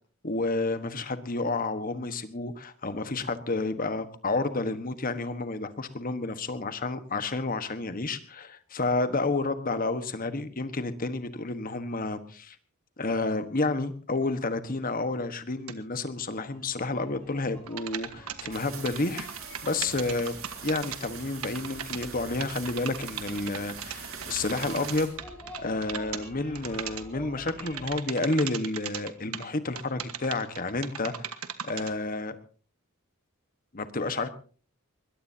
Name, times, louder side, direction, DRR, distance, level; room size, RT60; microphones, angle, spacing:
voice 1, 0.2-12.6 13.0-20.4 20.6-25.1 25.6-31.3 31.6-32.3 33.7-34.3, left 2 dB, 40° left, 10 dB, 1.4 m, -30 dB
sound 1, 15.7-15.8 17.7-21.2 21.4-22.1 22.4-26.3 26.6-27.1 27.5-29.5 29.8-31.9, right 9 dB, 90° right, 1.5 m, -37 dB
sound 2, 16.5-27.9, equal, 5° left, 7.7 m, -49 dB
sound 3, 18.5-25.1, right 6 dB, 65° right, 5.7 m, -43 dB
21.5 x 21.0 x 2.8 m, 0.41 s
head